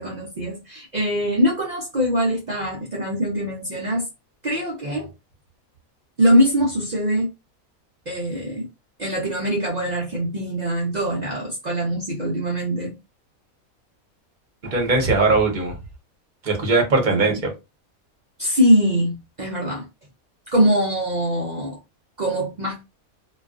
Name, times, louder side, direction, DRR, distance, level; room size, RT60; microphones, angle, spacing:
voice 1, 0.0-4.1 4.4-5.1 6.2-7.3 8.1-8.7 9.0-13.0 17.1-17.4 18.4-19.9 20.5-21.8 22.2-22.8, equal, 80° right, 0.3 m, -22 dB
voice 2, 14.6-15.7 16.4-17.3, right 3 dB, 40° right, 0.8 m, -19 dB
2.3 x 2.3 x 2.3 m
omnidirectional pair, 1.5 m